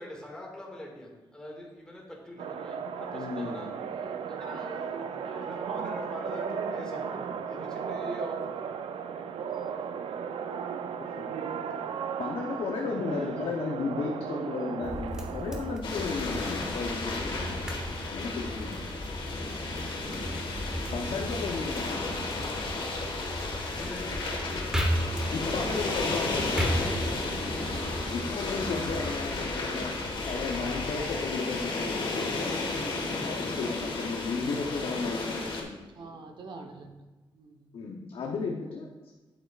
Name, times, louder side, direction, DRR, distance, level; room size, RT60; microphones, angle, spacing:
voice 1, 0.0-8.7 13.0-13.4 23.6-25.3 30.2-30.4, left 1 dB, 10° left, -2 dB, 1.8 m, -44 dB
sound 1, 2.4-15.8, right 7 dB, 90° right, 0.4 m, -35 dB
voice 2, 3.1-3.8 12.2-17.6 18.1-18.9 20.9-22.1 22.6-22.9 25.3-26.8 27.8-29.9 30.3-32.7 33.2-35.8 37.7-39.1, left 4 dB, 80° left, 1 dB, 0.7 m, -34 dB
sound 2, 14.8-29.5, equal, 5° right, 1.1 m, -36 dB
sound 3, 15.8-35.6, left 3 dB, 65° left, 1.4 m, -33 dB
voice 3, 25.1-26.1 36.0-37.0 37.3-37.7, right 3 dB, 60° right, 3 dB, 0.9 m, -46 dB
8.8 x 7.7 x 2.4 m, 1.2 s
wide cardioid pair, 135°, 9 cm